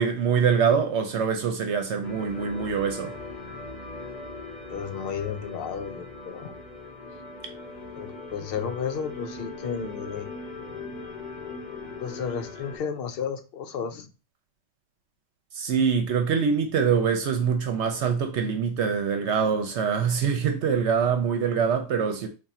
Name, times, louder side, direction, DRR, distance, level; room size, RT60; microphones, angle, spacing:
voice 1, 0.0-3.1 15.5-22.3, right 6 dB, 70° right, 0.8 m, -24 dB
sound 1, 2.0-12.8, left 3 dB, 35° left, 1.0 m, -39 dB
voice 2, 4.7-6.5 7.9-10.3 12.0-14.1, left 7 dB, 60° left, 0.7 m, -33 dB
3.6 x 2.3 x 4.2 m
omnidirectional pair, 1.3 m